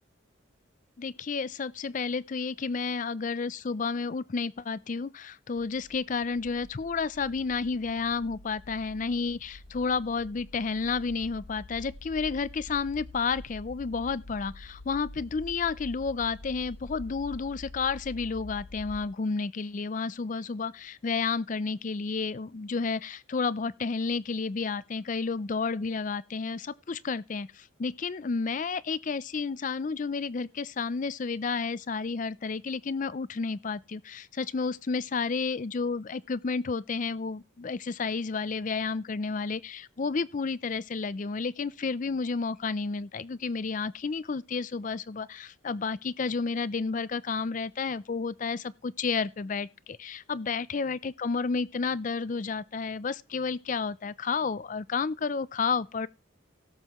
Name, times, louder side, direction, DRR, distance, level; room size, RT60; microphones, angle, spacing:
voice 1, 1.0-56.1, left 4 dB, 40° left, 0.4 m, -31 dB
sound 1, 5.6-19.0, left 2 dB, 75° left, 0.9 m, -47 dB
17.0 x 7.7 x 3.0 m
head